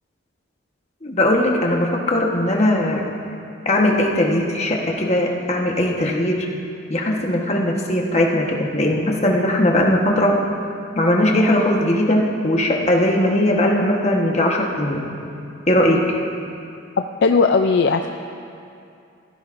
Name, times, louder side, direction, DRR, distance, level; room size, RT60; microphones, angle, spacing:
voice 1, 1.0-3.1 3.6-6.5 6.9-10.4 11.0-15.0 15.7-16.2, left 1 dB, 35° left, 0 dB, 1.2 m, -19 dB
voice 2, 17.2-18.1, left 4 dB, 60° left, 5 dB, 0.4 m, -16 dB
16.5 x 14.5 x 2.6 m, 2.5 s
head